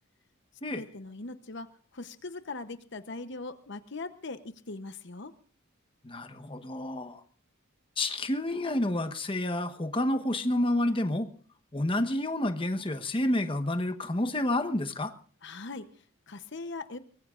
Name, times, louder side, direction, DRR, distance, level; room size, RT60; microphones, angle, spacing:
voice 1, 0.7-5.3 15.4-17.0, left 3 dB, 60° left, 11 dB, 0.9 m, -41 dB
voice 2, 6.0-7.2 8.0-11.3 11.7-15.1, left 1 dB, 25° left, 8 dB, 1.2 m, -29 dB
23.5 x 20.5 x 2.5 m, 0.43 s
head